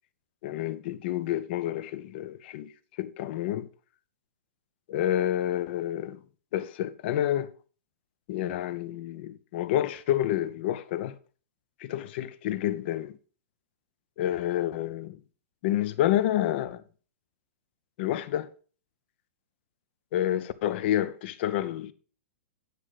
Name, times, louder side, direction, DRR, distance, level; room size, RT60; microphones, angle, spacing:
voice 1, 0.4-2.7 3.0-3.7 4.9-6.2 6.5-7.5 8.3-11.2 11.8-13.2 14.2-15.2 15.6-16.8 18.0-18.5 20.1-21.9, left 12 dB, 50° left, 0.8 m, -29 dB
9.7 x 6.3 x 4.9 m
hypercardioid pair, 140°, 8 cm